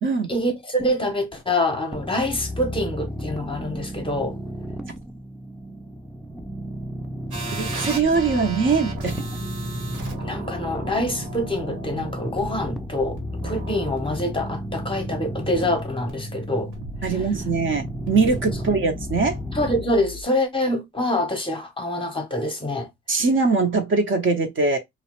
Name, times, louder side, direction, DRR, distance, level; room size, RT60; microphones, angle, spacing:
voice 1, 0.3-4.4 10.2-13.2 13.4-16.7 19.5-22.9, left 1 dB, 15° left, 0.7 m, -25 dB
sound 1, 1.9-19.8, equal, ahead, 0.3 m, -34 dB
sound 2, 7.3-20.2, right 1 dB, 80° right, 1.1 m, -36 dB
voice 2, 7.5-9.2 17.0-19.4 23.1-24.8, right 4 dB, 40° right, 0.6 m, -22 dB
2.4 x 2.0 x 2.8 m
cardioid pair, 90°, 30 cm